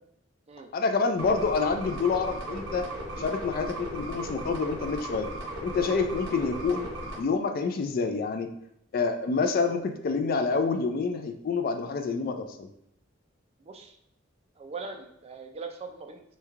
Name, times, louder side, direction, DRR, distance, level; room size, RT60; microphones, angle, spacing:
voice 1, 0.7-2.9 3.2-5.3 5.6-6.9 7.2-8.5 8.9-12.7, left 4 dB, 45° left, 6 dB, 0.3 m, -27 dB
sound 1, 1.2-7.2, right 1 dB, 75° right, 0.9 m, -37 dB
voice 2, 13.6-14.0 14.6-16.2, right 4 dB, 30° right, 5 dB, 0.3 m, -40 dB
3.1 x 2.2 x 3.5 m, 0.75 s
head